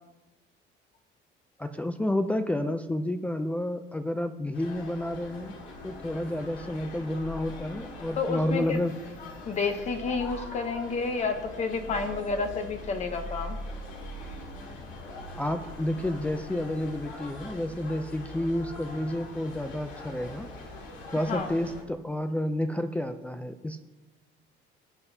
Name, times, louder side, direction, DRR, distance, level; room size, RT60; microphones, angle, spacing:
voice 1, 1.6-5.6 5.8-8.9 15.3-20.5 21.1-23.8, left 1 dB, 5° left, 6 dB, 0.3 m, -30 dB
sound 1, 4.5-21.8, left 1 dB, 80° left, 2.4 m, -42 dB
voice 2, 8.2-8.8 9.5-13.6 21.3-21.5, left 4 dB, 35° left, 6 dB, 0.8 m, -30 dB
17.5 x 7.8 x 2.7 m, 1.1 s
cardioid pair, 155°, 19 cm